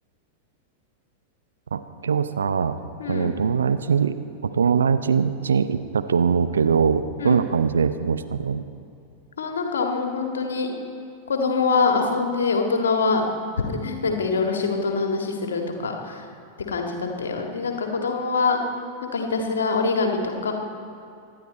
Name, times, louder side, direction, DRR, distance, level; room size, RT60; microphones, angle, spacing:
voice 1, 1.7-2.7 3.1-4.2 4.4-8.6, right 6 dB, 70° right, 10 dB, 0.6 m, -22 dB
voice 2, 3.0-3.3 7.2-7.4 9.4-10.7 11.3-13.3 13.8-16.3 16.7-18.6 19.0-20.5, left 4 dB, 65° left, 3 dB, 1.8 m, -24 dB
25.0 x 11.0 x 4.3 m, 2.6 s
figure-of-eight pair, 90°, 0 cm